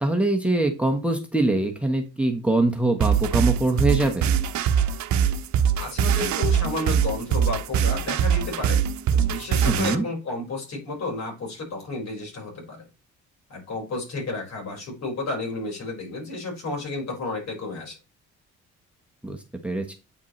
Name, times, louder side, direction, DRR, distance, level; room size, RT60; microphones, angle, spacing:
voice 1, 0.0-4.3 9.7-10.0 19.2-19.4 19.6-19.9, right 2 dB, 5° right, 5 dB, 1.2 m, -23 dB
sound 1, 3.0-9.9, right 8 dB, 70° right, 0.8 m, -22 dB
voice 2, 5.7-8.8 9.1-12.9 13.5-18.0, left 3 dB, 60° left, -1 dB, 5.0 m, -32 dB
8.6 x 5.2 x 3.2 m, 0.29 s
cardioid pair, 90°, 30 cm